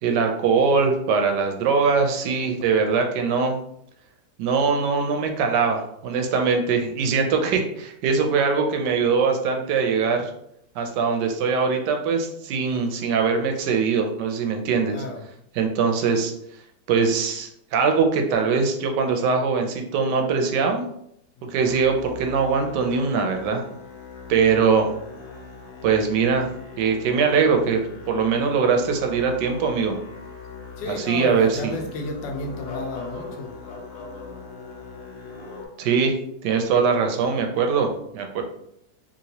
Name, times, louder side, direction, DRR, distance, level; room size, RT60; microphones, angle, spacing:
voice 1, 0.0-3.6 4.4-10.3 10.8-15.0 15.6-16.3 16.9-20.8 21.4-23.6 24.3-24.9 25.8-26.5 26.8-30.0 30.9-31.8 35.8-36.1 36.4-38.4, right 5 dB, 75° right, 4 dB, 1.2 m, -22 dB
voice 2, 14.9-15.2 21.4-21.7 30.8-33.5, left 2 dB, 85° left, 3 dB, 1.3 m, -33 dB
Musical instrument, 21.6-35.7, left 4 dB, 65° left, 0.6 m, -40 dB
2.9 x 2.9 x 2.8 m, 0.73 s
omnidirectional pair, 1.9 m